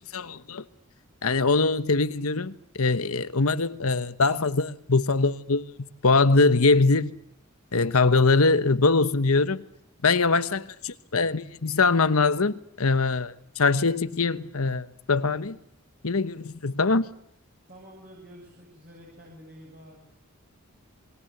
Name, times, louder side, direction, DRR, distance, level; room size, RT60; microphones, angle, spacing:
voice 1, 0.1-0.6 1.2-7.1 7.7-9.6 10.0-15.6 16.0-17.1, left 3 dB, 80° left, 1.2 m, -23 dB
voice 2, 17.7-20.0, equal, 45° right, 7.3 m, -48 dB
28.5 x 21.5 x 8.0 m
head